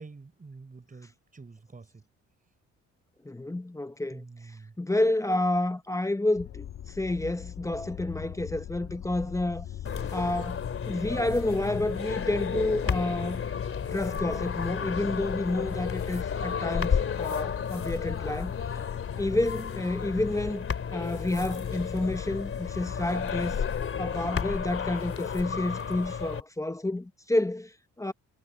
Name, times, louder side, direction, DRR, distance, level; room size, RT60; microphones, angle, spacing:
voice 1, 0.0-2.0 4.1-4.7, right 4 dB, 25° right, 5.2 m, -47 dB
voice 2, 3.2-4.2 4.8-9.7 10.1-10.6 10.9-13.4 13.9-18.5 19.2-20.6 20.9-23.6 24.0-28.1, left 1 dB, 10° left, 1.0 m, -29 dB
sound 1, 6.4-24.4, left 10 dB, 70° left, 1.8 m, -41 dB
sound 2, 9.8-26.4, left 6 dB, 45° left, 3.0 m, -32 dB
cardioid pair, 90°, 30 cm